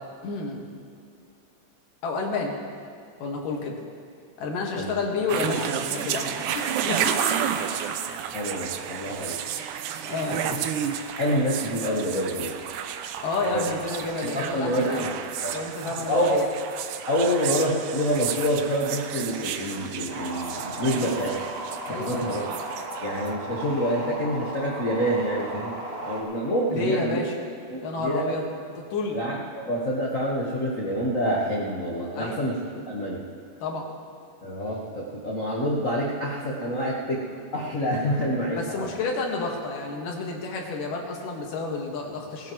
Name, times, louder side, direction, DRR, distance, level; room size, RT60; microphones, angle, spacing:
voice 1, 0.2-0.7 2.0-2.6 3.2-3.8 4.4-7.5 9.1-9.2 10.0-10.4 13.2-15.1 15.5-16.5 20.9-21.1 21.8-22.3 26.7-27.4 27.8-28.5 28.8-29.2 32.1-32.4 33.6-33.9 38.5-42.5, left 3 dB, 85° left, 0 dB, 3.3 m, -30 dB
sound 1, 5.3-23.4, right 9 dB, 85° right, 2.2 m, -32 dB
voice 2, 8.3-9.4 10.3-10.6 11.1-12.5 13.5-13.7 14.2-15.1 15.4-15.5 15.8-16.4 17.1-21.3 21.9-22.5 23.0-25.8 26.0-27.2 27.7-28.3 29.1-32.6 32.9-33.3 34.4-38.8, equal, 65° left, -4 dB, 0.7 m, -27 dB
sound 2, 20.1-26.2, right 2 dB, 55° right, 2.5 m, -35 dB
20.0 x 16.5 x 3.1 m, 2.3 s
omnidirectional pair, 3.7 m